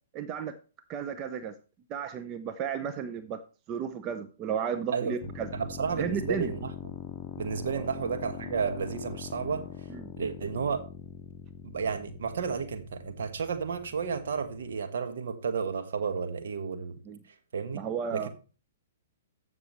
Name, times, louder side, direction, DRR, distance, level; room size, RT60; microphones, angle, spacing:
voice 1, 0.1-0.5 0.9-1.5 1.9-3.4 3.7-5.5 6.0-6.5 7.7-7.9 9.9-10.1 17.0-17.2 17.7-18.3, right 7 dB, 30° right, 0.7 m, -33 dB
voice 2, 4.9-6.7 7.4-9.6 10.2-10.8 11.6-16.9 17.5-17.8 18.1-18.3, right 6 dB, 65° right, 1.4 m, -32 dB
sound 1, 5.2-14.8, left 8 dB, 35° left, 0.7 m, -43 dB
14.5 x 6.1 x 3.1 m
figure-of-eight pair, 115°, 0 cm